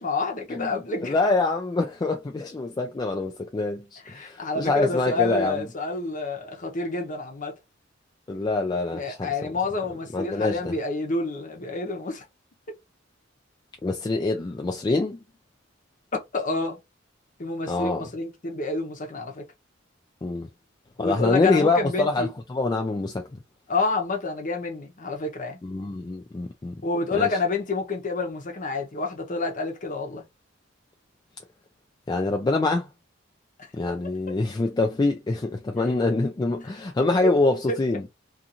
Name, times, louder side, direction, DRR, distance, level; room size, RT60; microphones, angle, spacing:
voice 1, 0.0-1.1 4.0-7.5 8.9-12.3 16.3-16.8 17.4-19.5 21.0-22.3 23.7-25.6 26.8-30.3 33.9-34.0, left 3 dB, 40° left, 0.8 m, -28 dB
voice 2, 1.0-5.7 8.3-9.5 10.1-10.7 13.8-15.2 17.7-18.1 20.2-20.5 21.0-23.3 25.6-26.8 27.1-27.3 32.1-32.9 33.7-38.0, left 3 dB, 20° left, 0.3 m, -25 dB
2.5 x 2.5 x 2.8 m
head